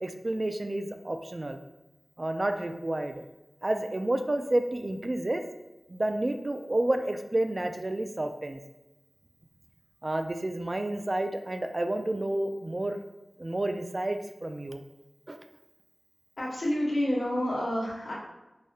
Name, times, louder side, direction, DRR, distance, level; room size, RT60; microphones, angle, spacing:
voice 1, 0.0-1.6 2.2-3.2 3.6-5.4 5.9-8.6 10.0-13.0 13.4-14.8 15.3-15.4, right 1 dB, 40° right, 6 dB, 0.3 m, -30 dB
voice 2, 16.4-18.1, left 1 dB, 70° left, -4 dB, 1.0 m, -29 dB
4.8 x 2.2 x 2.7 m, 1.0 s
wide cardioid pair, 60°, 0 cm